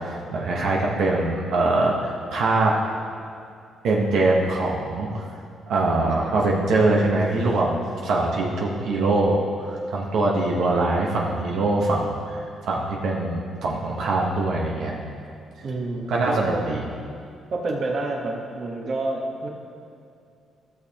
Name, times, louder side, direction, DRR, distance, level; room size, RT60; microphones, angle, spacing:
voice 1, 0.0-2.8 3.8-5.2 5.7-14.9 16.1-16.9, right 2 dB, 75° right, -2 dB, 1.0 m, -23 dB
voice 2, 15.6-16.6 17.5-19.5, right 2 dB, 50° right, 1 dB, 1.2 m, -28 dB
14.0 x 6.5 x 2.9 m, 2.4 s
cardioid pair, 90°, 0 cm